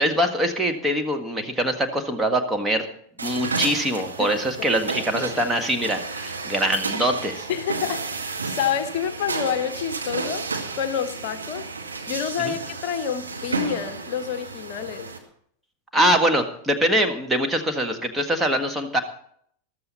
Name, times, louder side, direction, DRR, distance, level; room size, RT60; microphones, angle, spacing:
voice 1, 0.0-2.9 3.2-7.5 12.4-12.5 15.9-19.0, equal, 10° right, 4 dB, 1.6 m, -23 dB
sound 1, 3.2-15.2, right 4 dB, 75° right, 2.0 m, -32 dB
voice 2, 7.5-8.0 8.4-11.7 12.1-15.1, left 8 dB, 45° left, 10 dB, 0.9 m, -28 dB
14.5 x 13.0 x 4.1 m, 0.65 s
figure-of-eight pair, 90°, 0 cm